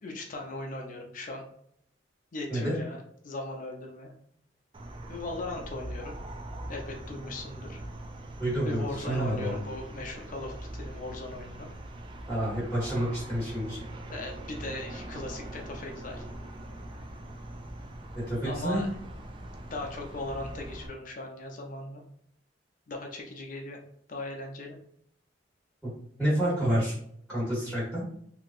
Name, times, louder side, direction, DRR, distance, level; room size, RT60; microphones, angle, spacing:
voice 1, 0.0-1.4 2.3-3.0 3.2-4.1 5.1-6.2 6.7-7.8 8.6-11.7 14.1-16.2 18.4-18.9 19.6-22.0 22.9-23.8 24.1-24.8, left 2 dB, 45° left, 2 dB, 0.5 m, -38 dB
sound 1, 4.7-20.9, right 1 dB, 30° right, 0.3 m, -42 dB
voice 2, 8.4-9.6 12.3-13.8 18.3-18.8 25.8-25.9 26.2-26.9 27.3-28.0, right 1 dB, ahead, -9 dB, 1.0 m, -29 dB
2.9 x 2.4 x 2.5 m, 0.69 s
head